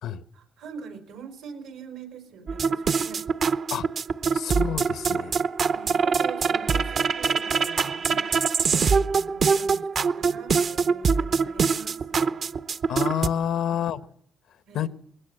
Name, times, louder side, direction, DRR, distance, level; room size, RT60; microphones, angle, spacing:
voice 1, 0.3-3.3 5.7-12.4 13.3-13.8 14.7-14.9, right 6 dB, 90° right, 4.9 m, -44 dB
sound 1, 2.5-13.3, right 5 dB, 50° right, 0.8 m, -24 dB
voice 2, 4.3-5.3 12.9-14.1 14.7-14.9, left 9 dB, 75° left, 1.1 m, -28 dB
20.5 x 18.0 x 7.8 m
cardioid pair, 90°, 0 cm